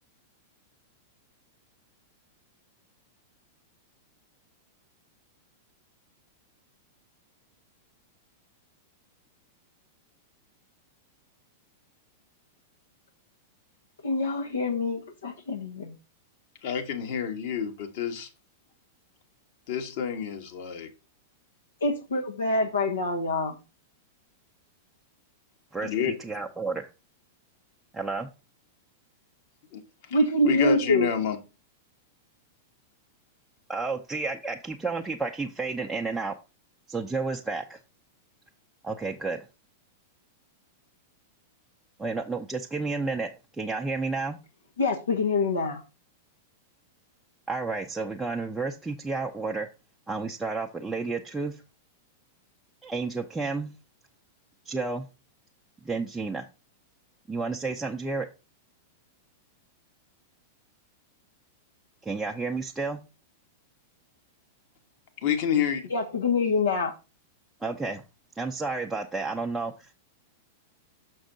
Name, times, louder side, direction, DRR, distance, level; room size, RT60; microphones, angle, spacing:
voice 1, 14.0-15.9 21.8-23.6 30.1-31.1 44.8-45.8 65.9-66.9, left 2 dB, 80° left, 1.0 m, -25 dB
voice 2, 16.6-18.3 19.7-20.9 25.8-26.1 29.7-29.8 30.1-30.2 30.4-31.4 65.2-65.8, left 8 dB, 55° left, 1.4 m, -28 dB
voice 3, 25.7-26.9 27.9-28.3 33.7-36.3 36.9-37.8 38.8-39.5 42.0-43.3 43.6-44.4 47.5-49.7 50.1-51.6 52.8-53.7 54.7-55.1 55.8-56.4 57.3-58.3 62.0-63.0 67.6-68.0 68.3-69.9, right 3 dB, 10° right, 0.6 m, -31 dB
6.3 x 6.1 x 3.9 m
figure-of-eight pair, 100°, 0 cm